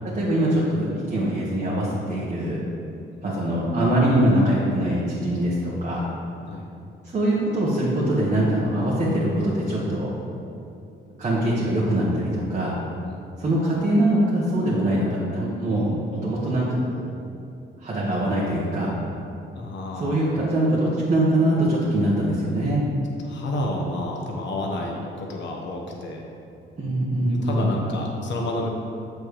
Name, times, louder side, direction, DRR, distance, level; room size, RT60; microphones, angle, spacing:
voice 1, 0.1-2.6 3.2-6.1 7.0-10.1 11.2-12.8 13.4-17.0 17.8-18.9 20.0-22.8 26.8-27.7, right 1 dB, 35° right, -7 dB, 1.5 m, -23 dB
voice 2, 19.5-20.4 23.2-26.2 27.3-28.7, left 1 dB, 65° left, -1 dB, 1.3 m, -30 dB
7.0 x 6.4 x 3.3 m, 2.6 s
cardioid pair, 90°, 20 cm